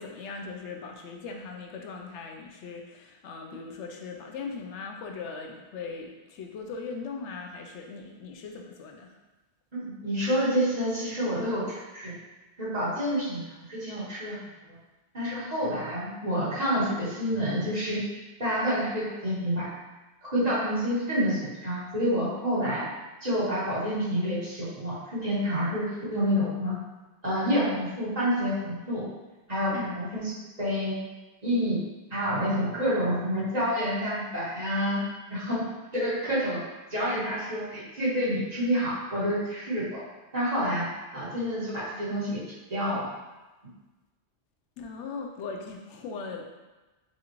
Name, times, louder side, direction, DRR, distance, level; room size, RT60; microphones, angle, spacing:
voice 1, 0.0-9.1 29.7-30.0 44.8-46.5, left 4 dB, 90° left, 2 dB, 0.9 m, -39 dB
voice 2, 9.7-12.2 12.6-14.4 14.7-14.8 15.1-18.1 18.4-19.7 20.2-22.9 23.2-26.8 27.2-29.1 29.5-31.0 31.4-31.8 32.1-35.0 35.3-35.7 35.9-36.6 36.9-40.0 40.3-40.9 41.1-42.4 42.7-43.1, equal, 40° right, -10 dB, 1.4 m, -28 dB
5.4 x 2.4 x 3.0 m, 1.1 s
omnidirectional pair, 1.1 m